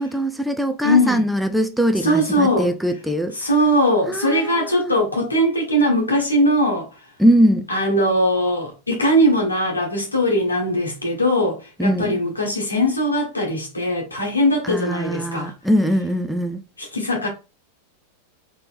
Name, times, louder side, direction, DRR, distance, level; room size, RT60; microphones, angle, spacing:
voice 1, 0.0-3.3 4.1-4.9 7.2-7.7 11.8-12.2 14.6-16.6, equal, ahead, 0.5 m, -21 dB
voice 2, 0.8-1.2 2.0-2.7 3.3-6.9 7.7-15.5 16.8-17.3, equal, 80° left, 1.4 m, -20 dB
4.2 x 3.4 x 2.6 m
figure-of-eight pair, 90°, 0 cm